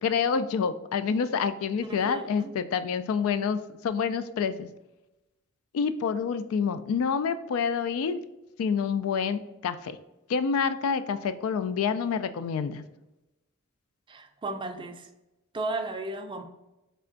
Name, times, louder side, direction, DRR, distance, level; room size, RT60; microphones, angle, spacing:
voice 1, 0.0-4.7 5.7-8.2 8.6-10.0 10.3-12.8, left 6 dB, 75° left, 13 dB, 0.3 m, -27 dB
voice 2, 1.8-2.5 14.1-15.1 15.5-16.4, right 2 dB, 25° right, 6 dB, 0.4 m, -35 dB
3.4 x 3.3 x 3.8 m, 0.98 s
head